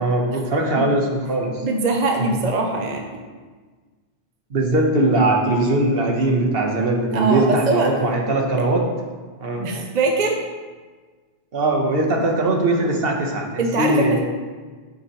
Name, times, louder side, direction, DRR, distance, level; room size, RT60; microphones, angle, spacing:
voice 1, 0.0-1.6 4.5-8.9 9.4-9.7 11.5-14.2, right 2 dB, 65° right, 1 dB, 1.4 m, -20 dB
voice 2, 1.6-3.0 7.1-7.9 9.6-10.4 13.6-14.2, right 3 dB, 45° right, 2 dB, 0.8 m, -22 dB
8.6 x 8.0 x 3.1 m, 1.4 s
omnidirectional pair, 1.1 m